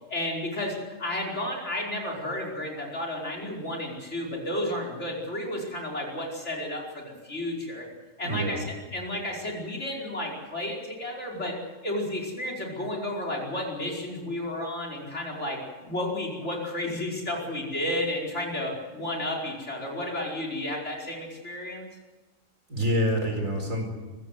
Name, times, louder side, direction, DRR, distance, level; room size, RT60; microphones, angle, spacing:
voice 1, 0.1-7.9 8.2-11.6 11.8-21.9, left 1 dB, 60° left, -1 dB, 5.4 m, -32 dB
voice 2, 8.2-8.6 22.7-23.8, equal, 75° right, 3 dB, 5.0 m, -26 dB
23.5 x 15.5 x 8.1 m, 1.2 s
omnidirectional pair, 1.4 m